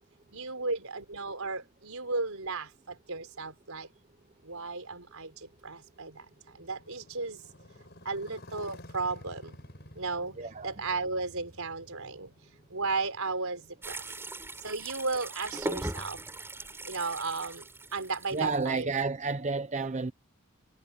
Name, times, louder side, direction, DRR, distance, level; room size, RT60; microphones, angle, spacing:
voice 1, 0.3-3.9 4.4-6.3 6.5-7.4 8.0-9.6 9.9-10.4 10.6-12.3 12.7-14.0 14.6-16.2 16.8-17.7 17.9-18.9, right 3 dB, 80° right, 4.3 m, -34 dB
Motorcycle, 4.4-14.3, left 1 dB, 50° left, 6.2 m, -52 dB
voice 2, 10.4-10.7 18.3-20.1, right 4 dB, 35° right, 0.6 m, -31 dB
sound 1, 13.8-18.8, right 1 dB, 10° right, 5.5 m, -40 dB
head